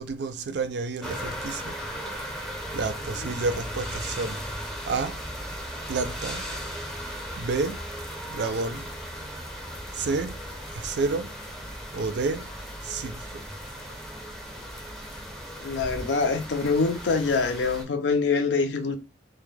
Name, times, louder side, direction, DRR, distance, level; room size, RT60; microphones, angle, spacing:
voice 1, 0.0-1.8 2.0-2.2 2.7-4.4 4.9-5.2 5.9-6.4 7.4-7.8 8.3-8.9 9.9-10.4 10.7-11.3 11.9-12.5 12.8-13.4 13.8-14.0, right 4 dB, 65° right, 0.4 m, -30 dB
sound 1, 1.0-17.8, equal, ahead, 0.6 m, -37 dB
voice 2, 15.6-19.0, left 4 dB, 70° left, 0.4 m, -25 dB
2.2 x 2.1 x 3.1 m
head